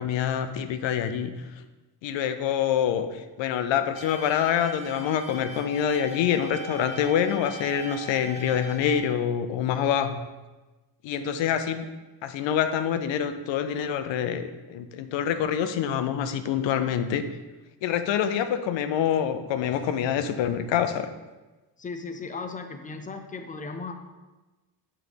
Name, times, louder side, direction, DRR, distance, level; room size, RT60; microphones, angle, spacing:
voice 1, 0.0-1.3 2.0-10.2 11.0-11.9 12.2-17.2 17.8-21.1, left 9 dB, 85° left, 9 dB, 0.6 m, -26 dB
sound 1, 4.0-9.0, equal, 15° right, 0.9 m, -40 dB
voice 2, 21.8-23.9, left 4 dB, 20° left, 7 dB, 0.5 m, -36 dB
6.0 x 3.2 x 5.2 m, 1.2 s
cardioid pair, 95°, 43 cm